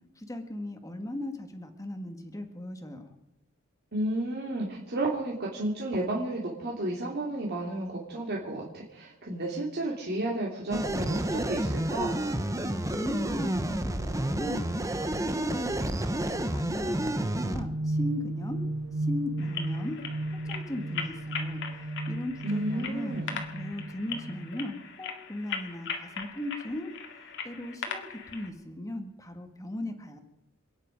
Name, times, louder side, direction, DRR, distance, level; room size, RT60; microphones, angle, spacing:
voice 1, 0.2-3.1 12.6-15.6 16.0-18.7 19.1-20.0 20.3-23.1 23.5-30.2, left 1 dB, 15° left, 5 dB, 1.7 m, -38 dB
voice 2, 3.9-12.2 22.4-23.4, right 1 dB, 50° right, -3 dB, 2.8 m, -32 dB
sound 1, 10.7-17.6, right 1 dB, 15° right, 1.0 m, -30 dB
sound 2, 16.9-24.7, right 1 dB, 70° right, 1.6 m, -34 dB
sound 3, 19.4-28.5, left 6 dB, 60° left, 2.1 m, -40 dB
28.0 x 9.9 x 5.2 m, 0.91 s
head